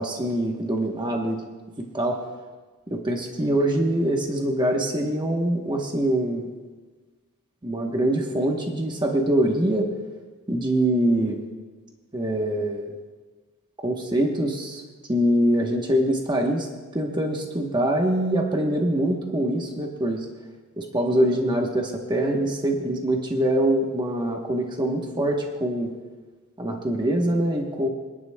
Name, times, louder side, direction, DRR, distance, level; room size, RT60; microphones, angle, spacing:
voice 1, 0.0-1.4 1.8-2.2 2.9-6.5 7.6-9.9 10.5-11.4 12.1-12.9 13.8-14.8 15.1-16.7 16.9-20.3 20.8-25.9 26.6-27.9, right 1 dB, 20° right, 1 dB, 1.0 m, -24 dB
28.0 x 11.0 x 2.3 m, 1.3 s
head